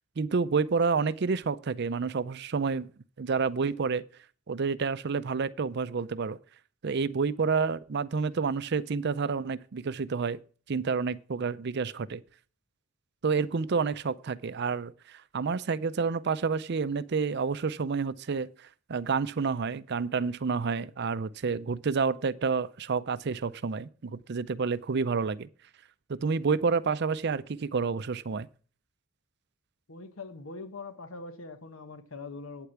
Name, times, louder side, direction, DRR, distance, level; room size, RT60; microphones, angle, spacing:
voice 1, 0.2-2.9 3.2-4.0 4.5-6.4 6.8-10.4 10.7-12.2 13.2-25.5 26.1-28.5, right 5 dB, 55° right, 0.5 m, -29 dB
voice 2, 29.9-32.7, left 3 dB, 80° left, 1.2 m, -42 dB
9.0 x 8.2 x 5.8 m
head